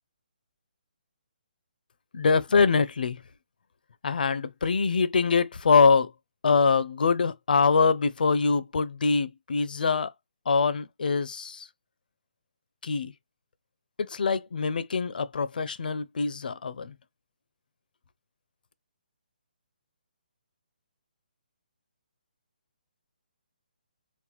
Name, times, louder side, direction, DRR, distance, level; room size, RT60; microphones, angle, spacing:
voice 1, 2.1-3.2 4.0-6.1 6.4-10.1 10.5-11.7 12.8-13.1 14.0-16.9, left 5 dB, 70° left, 0.5 m, -24 dB
3.9 x 2.2 x 2.9 m
hypercardioid pair, 165°, 5 cm